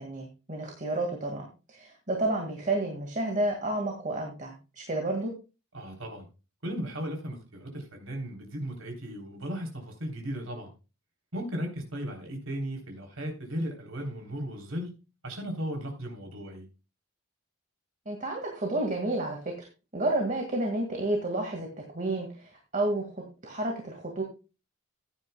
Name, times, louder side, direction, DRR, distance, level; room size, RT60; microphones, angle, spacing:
voice 1, 0.0-5.3 18.1-19.7 19.9-24.2, right 2 dB, 35° right, 2 dB, 2.0 m, -31 dB
voice 2, 5.7-6.3 6.6-10.7 11.3-14.9 15.2-16.7, equal, 65° right, 2 dB, 3.6 m, -36 dB
15.0 x 9.5 x 2.3 m, 0.31 s
head